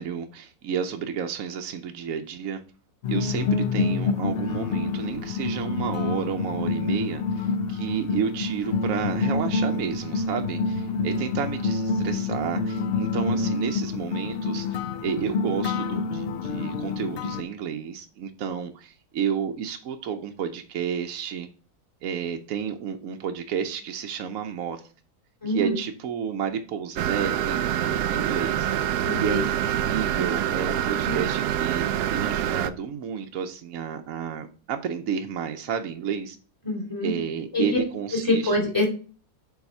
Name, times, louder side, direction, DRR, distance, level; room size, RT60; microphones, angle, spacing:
voice 1, 0.0-2.6 3.1-21.5 22.0-24.8 25.5-36.4 37.0-38.6, right 7 dB, 65° right, 1.0 m, -31 dB
sound 1, 3.0-17.4, left 4 dB, 85° left, 0.5 m, -27 dB
voice 2, 25.4-25.8 29.0-29.4 31.0-31.2 36.6-37.1 37.5-37.8 38.1-38.8, left 1 dB, 10° left, 2.8 m, -25 dB
sound 2, 27.0-32.7, right 10 dB, 90° right, 1.2 m, -26 dB
7.1 x 4.2 x 5.3 m
omnidirectional pair, 1.7 m